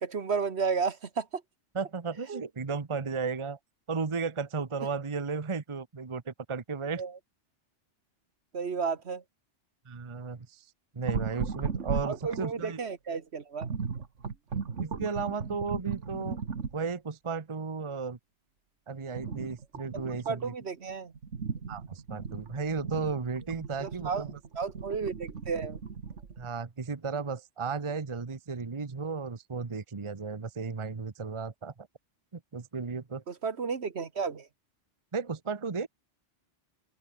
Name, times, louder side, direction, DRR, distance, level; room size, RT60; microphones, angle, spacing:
voice 1, 0.0-1.4 2.3-2.4 7.0-7.1 8.5-9.2 12.1-13.7 20.3-21.1 23.8-24.2 24.5-25.8 33.3-34.5, right 5 dB, 65° right, 1.6 m, -32 dB
voice 2, 1.7-3.6 3.9-7.0 9.9-10.6 10.9-12.8 14.8-16.4 16.7-18.2 18.9-20.5 21.7-24.4 26.4-31.9 32.5-33.2 35.1-35.9, right 5 dB, 25° right, 1.0 m, -34 dB
sound 1, 11.1-12.7 13.6-16.9 19.2-20.4 20.9-26.5, right 5 dB, 90° right, 2.0 m, -36 dB
open air
omnidirectional pair, 1.2 m